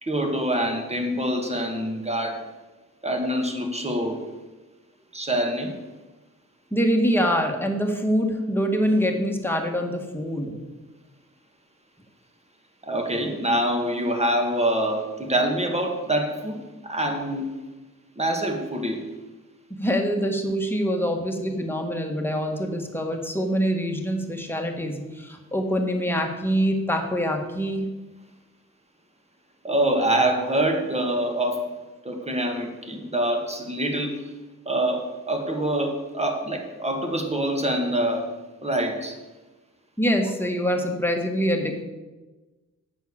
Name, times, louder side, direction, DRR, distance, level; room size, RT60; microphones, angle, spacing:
voice 1, 0.0-2.4 3.0-4.2 5.1-5.7 12.8-17.5 18.2-19.0 29.6-31.6 32.1-34.2 34.7-38.3 38.6-39.2, right 1 dB, 20° right, 3 dB, 2.0 m, -25 dB
voice 2, 6.7-10.5 19.7-27.8 40.0-41.8, equal, 5° left, 2 dB, 1.8 m, -25 dB
8.0 x 6.5 x 7.1 m, 1.2 s
cardioid pair, 70°, 32 cm